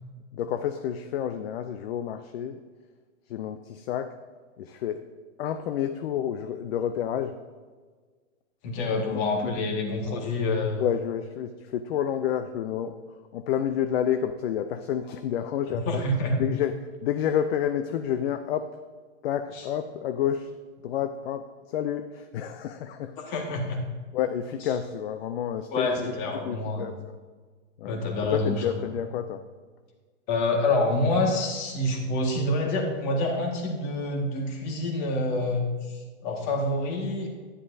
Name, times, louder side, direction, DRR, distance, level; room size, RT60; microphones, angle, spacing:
voice 1, 0.3-2.6 3.3-4.2 4.6-5.1 5.4-7.4 9.0-9.5 10.8-13.0 13.3-16.0 16.4-16.7 17.0-18.7 19.2-20.5 20.8-23.2 24.1-26.1 26.5-27.2 27.8-28.0 28.3-29.4, left 9 dB, 55° left, 9 dB, 0.6 m, -29 dB
voice 2, 8.6-10.9 15.7-16.4 19.5-19.7 23.3-23.8 25.7-26.8 27.8-28.6 30.3-37.3, left 2 dB, 40° left, 1 dB, 1.8 m, -27 dB
11.0 x 10.0 x 2.7 m, 1.5 s
hypercardioid pair, 155°, 37 cm